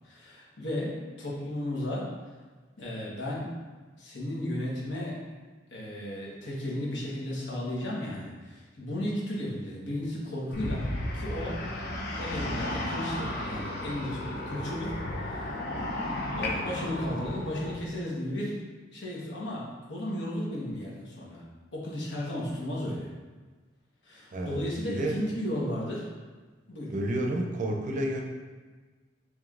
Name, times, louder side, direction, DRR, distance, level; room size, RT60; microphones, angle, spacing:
voice 1, 0.0-2.1 2.8-3.5 4.0-5.2 5.7-10.9 11.1-11.6 12.2-15.0 15.2-15.9 16.2-18.6 18.9-21.4 21.7-23.1 24.0-26.1 26.7-26.9, left 1 dB, 80° left, -5 dB, 1.1 m, -34 dB
sound 1, 10.5-17.7, left 1 dB, 60° left, 0.6 m, -34 dB
voice 2, 24.9-25.2 26.9-28.2, right 1 dB, 45° right, 1 dB, 0.5 m, -30 dB
5.0 x 3.2 x 2.4 m, 1.3 s
head